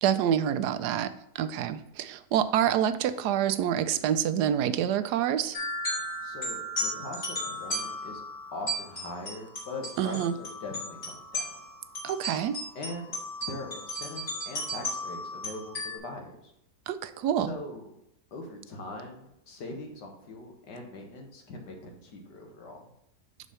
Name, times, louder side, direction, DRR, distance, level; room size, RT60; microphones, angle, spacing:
voice 1, 0.0-5.6 10.0-10.3 12.0-12.6 16.9-17.5, right 10 dB, 80° right, 12 dB, 1.1 m, -27 dB
sound 1, 5.5-16.0, equal, 45° left, 2.9 m, -35 dB
voice 2, 5.9-8.2 8.5-11.4 12.8-13.1 13.5-16.5 17.4-17.9 18.3-22.8, left 2 dB, 90° left, 2 dB, 2.0 m, -41 dB
6.2 x 4.1 x 5.5 m, 0.82 s
omnidirectional pair, 1.8 m